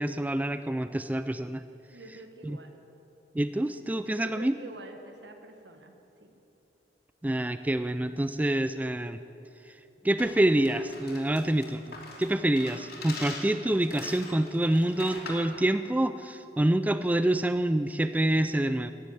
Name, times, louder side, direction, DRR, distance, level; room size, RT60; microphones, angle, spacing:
voice 1, 0.0-1.6 2.5-2.6 3.3-4.5 7.2-9.2 10.0-18.9, right 1 dB, 10° right, 11 dB, 0.3 m, -27 dB
voice 2, 1.9-2.8 3.6-3.8 4.2-5.9 6.2-6.4, right 2 dB, 75° right, 5 dB, 1.5 m, -47 dB
sound 1, 10.2-15.5, left 3 dB, 60° left, 3.0 m, -42 dB
14.5 x 10.5 x 7.8 m, 2.9 s
head